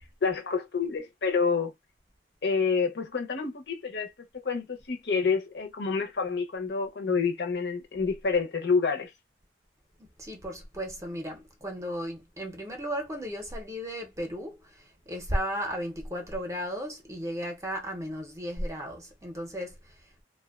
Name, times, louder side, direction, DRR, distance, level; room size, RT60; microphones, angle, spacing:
voice 1, 0.2-1.7 2.4-4.1 4.4-9.1, left 5 dB, 65° left, 0.6 m, -28 dB
voice 2, 10.0-20.1, equal, 15° right, 0.5 m, -35 dB
2.5 x 2.1 x 2.3 m
head